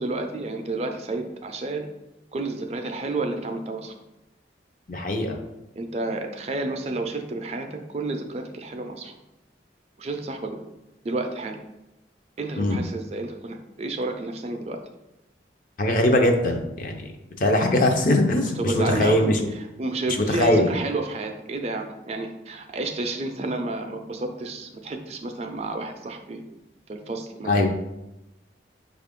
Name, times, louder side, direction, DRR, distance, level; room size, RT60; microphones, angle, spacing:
voice 1, 0.0-1.9 2.3-3.9 5.8-9.1 10.0-10.6 11.0-11.6 12.4-14.8 18.6-26.4 26.9-27.7, right 2 dB, 35° right, 5 dB, 0.4 m, -30 dB
voice 2, 4.9-5.4 12.6-12.8 15.8-17.1 17.4-19.4 20.2-20.7 27.4-27.7, left 1 dB, 45° left, 4 dB, 0.5 m, -21 dB
5.8 x 2.4 x 3.6 m, 0.95 s
head